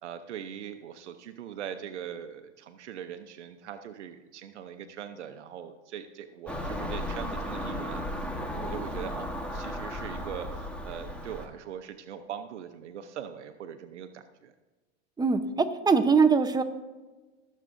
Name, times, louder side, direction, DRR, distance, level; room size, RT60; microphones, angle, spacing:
voice 1, 0.0-8.3 8.5-14.5, right 9 dB, 85° right, 8 dB, 0.8 m, -41 dB
Car passing by / Engine, 6.5-11.5, equal, 5° left, 1.3 m, -35 dB
voice 2, 15.2-16.6, right 5 dB, 10° right, 7 dB, 0.7 m, -22 dB
19.0 x 7.4 x 2.6 m, 1.2 s
hypercardioid pair, 110°, 34 cm